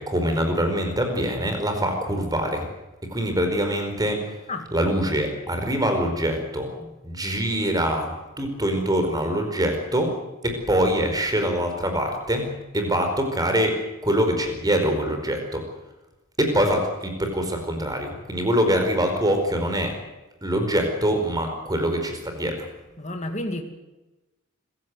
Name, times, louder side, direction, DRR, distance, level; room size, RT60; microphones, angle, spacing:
voice 1, 0.0-2.7 3.1-4.2 4.7-10.1 10.4-12.5 12.7-13.7 14.0-15.6 16.4-19.9 20.4-22.7, equal, 20° right, 5 dB, 4.8 m, -24 dB
voice 2, 23.0-23.6, left 1 dB, 35° left, 5 dB, 2.6 m, -30 dB
26.0 x 16.0 x 8.0 m, 1.1 s
head